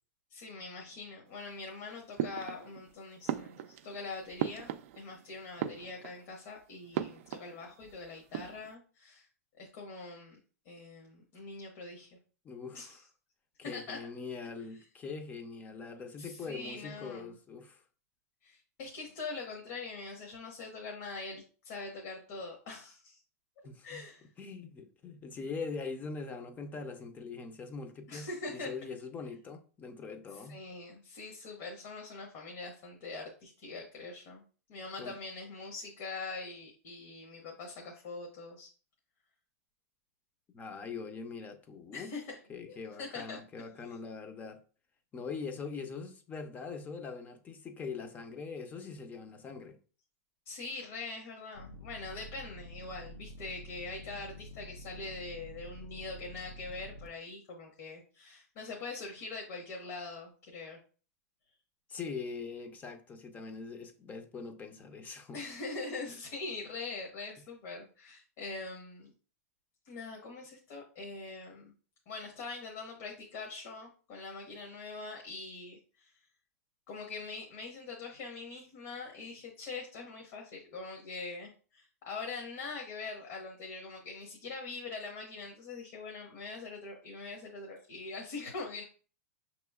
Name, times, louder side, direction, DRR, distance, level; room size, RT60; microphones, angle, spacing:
voice 1, 0.3-4.7 4.9-9.3 9.6-10.4 10.6-12.2 12.7-13.0 13.6-14.0 16.2-17.3 18.4-23.2 23.8-24.2 28.1-28.7 30.5-34.4 34.7-38.7 41.9-42.4 42.6-43.4 50.5-60.8 65.3-69.1 69.8-71.7 72.1-76.1 76.9-88.8, left 3 dB, 55° left, 1.0 m, -43 dB
sound 1, 2.2-2.9 3.2-5.2 5.5-6.3 6.9-7.9 8.2-8.7, right 11 dB, 60° right, 0.3 m, -38 dB
voice 2, 12.4-13.1 13.6-17.8 23.6-24.1 24.4-30.6 35.0-35.1 40.5-42.1 42.5-44.6 45.1-49.8 61.9-65.4, left 4 dB, 20° left, 0.5 m, -42 dB
sound 2, 51.5-57.1, equal, 85° left, 0.6 m, -48 dB
5.8 x 3.0 x 2.3 m
hypercardioid pair, 135°, 8 cm